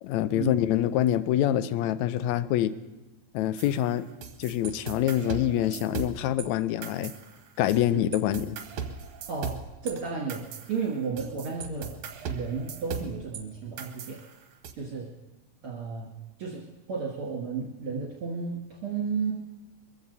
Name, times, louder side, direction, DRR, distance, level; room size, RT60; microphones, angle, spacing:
voice 1, 0.0-2.7 3.3-4.1 4.4-7.1 7.6-8.6, left 12 dB, 75° left, 14 dB, 1.7 m, -26 dB
sound 1, 3.6-6.5 6.8-7.8 8.1-13.4 13.8-14.7, right 6 dB, 65° right, 2.2 m, -38 dB
voice 2, 9.2-9.6 9.8-11.9 12.3-14.2 14.7-15.1 15.6-16.1 16.4-19.3, right 5 dB, 45° right, -3 dB, 2.7 m, -33 dB
23.0 x 15.0 x 4.1 m, 1.1 s
omnidirectional pair, 3.7 m